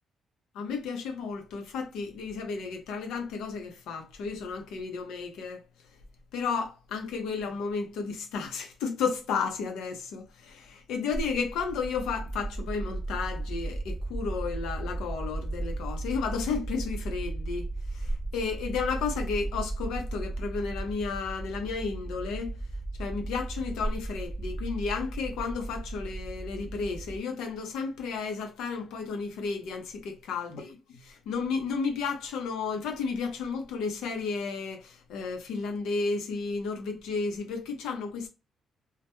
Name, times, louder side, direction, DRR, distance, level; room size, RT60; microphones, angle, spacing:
voice 1, 0.5-5.6 6.3-22.6 23.0-38.3, left 5 dB, 90° left, 0.6 m, -33 dB
sound 1, 11.1-27.2, right 2 dB, 15° left, 0.8 m, -35 dB
2.2 x 2.1 x 2.9 m
cardioid pair, 90°, 0 cm